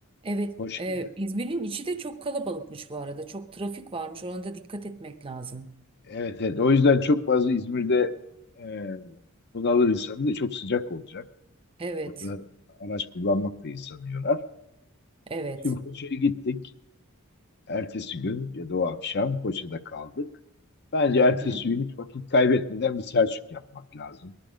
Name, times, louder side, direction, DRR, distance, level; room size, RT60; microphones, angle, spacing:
voice 1, 0.2-5.7 11.8-12.3 15.3-15.7 21.3-21.6, right 2 dB, 25° right, 7 dB, 0.7 m, -33 dB
voice 2, 6.1-8.1 8.6-9.1 9.5-11.2 12.2-12.4 12.8-14.4 15.6-16.6 17.7-20.3 20.9-21.9 22.1-23.6 23.9-24.3, left 3 dB, 50° left, 11 dB, 0.7 m, -25 dB
19.5 x 11.5 x 5.1 m, 0.88 s
head